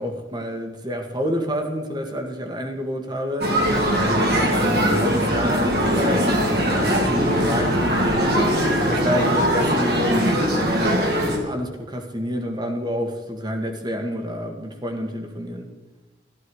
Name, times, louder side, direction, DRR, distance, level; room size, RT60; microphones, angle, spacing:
voice 1, 0.0-3.6 3.9-8.5 8.9-15.7, equal, 25° right, 4 dB, 1.8 m, -28 dB
sound 1, 3.4-11.4, equal, 60° right, 3.2 m, -21 dB
14.5 x 13.5 x 4.9 m, 1.2 s
head